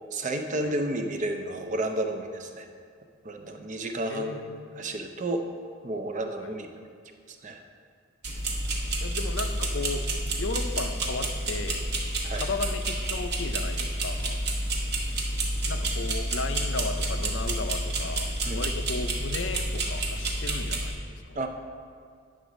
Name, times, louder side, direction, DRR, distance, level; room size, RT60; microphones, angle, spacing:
voice 1, 0.1-2.7 3.2-4.3 4.8-5.4 5.8-6.7 7.3-7.6 12.2-12.5 18.5-18.6 21.4-21.5, right 1 dB, 35° right, 5 dB, 0.5 m, -31 dB
voice 2, 4.1-4.6 6.4-6.5 9.0-10.1 10.4-11.8 12.3-14.4 15.6-21.4, left 3 dB, 55° left, 7 dB, 0.5 m, -35 dB
sound 1, 8.2-20.9, right 1 dB, 50° right, 1.1 m, -29 dB
9.7 x 3.9 x 6.2 m, 2.2 s
head